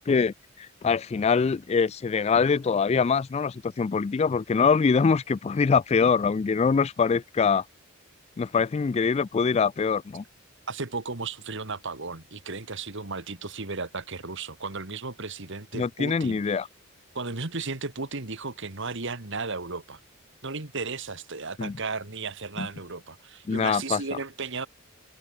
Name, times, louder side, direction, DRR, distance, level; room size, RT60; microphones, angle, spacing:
voice 1, 0.0-7.6 8.4-10.2 15.7-16.7 21.6-21.8 22.6-22.7 23.5-24.0, left 5 dB, 30° left, 0.3 m, -24 dB
voice 2, 10.7-16.5 17.1-20.0 20.4-24.7, right 4 dB, 60° right, 2.0 m, -35 dB
open air
head